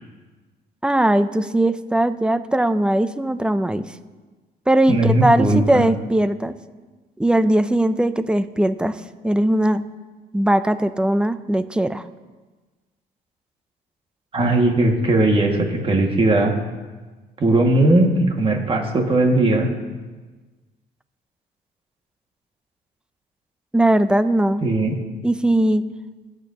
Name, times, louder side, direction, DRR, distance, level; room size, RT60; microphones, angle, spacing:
voice 1, 0.8-3.8 4.7-6.5 7.2-9.0 9.2-9.8 10.3-12.0 23.7-24.6 25.2-25.8, right 1 dB, 5° right, 12 dB, 0.6 m, -19 dB
voice 2, 4.9-5.8 14.3-16.5 17.4-19.7 24.6-24.9, right 2 dB, 35° right, 1 dB, 2.1 m, -18 dB
21.5 x 8.2 x 3.0 m, 1.3 s
cardioid pair, 100°, 17 cm